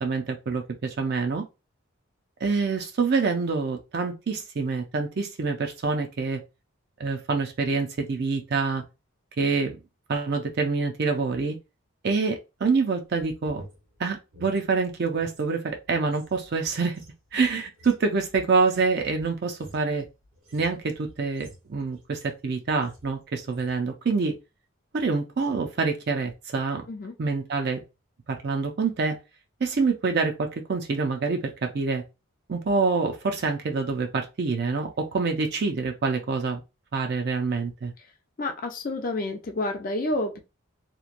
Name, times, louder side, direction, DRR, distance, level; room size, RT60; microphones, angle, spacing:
voice 1, 0.0-1.4 2.4-6.4 7.0-8.8 9.4-9.8 10.1-11.6 12.0-13.6 14.0-17.0 17.3-20.1 20.5-24.4 24.9-26.8 27.2-27.8 28.3-29.2 29.6-32.0 32.5-36.6 36.9-37.9, right 4 dB, 50° right, 0.4 m, -26 dB
sound 1, 13.1-15.5 15.8-22.5 22.8-23.2 23.5-23.8, right 1 dB, 70° right, 0.9 m, -50 dB
voice 2, 38.4-40.4, left 2 dB, 40° left, 0.5 m, -29 dB
2.9 x 2.2 x 2.5 m
head